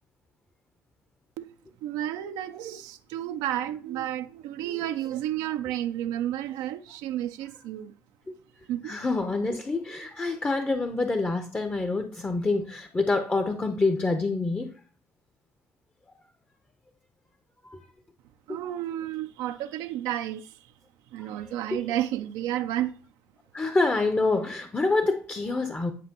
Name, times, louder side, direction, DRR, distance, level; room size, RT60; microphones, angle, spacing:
voice 1, 1.8-7.9 8.7-8.9 18.5-20.5 21.1-22.9, right 12 dB, 70° right, 0.5 m, -31 dB
voice 2, 8.8-14.7 17.6-17.8 18.5-18.6 21.4-21.8 23.5-25.9, left 3 dB, 25° left, 0.8 m, -27 dB
9.9 x 5.0 x 2.9 m
hypercardioid pair, 60°, 7 cm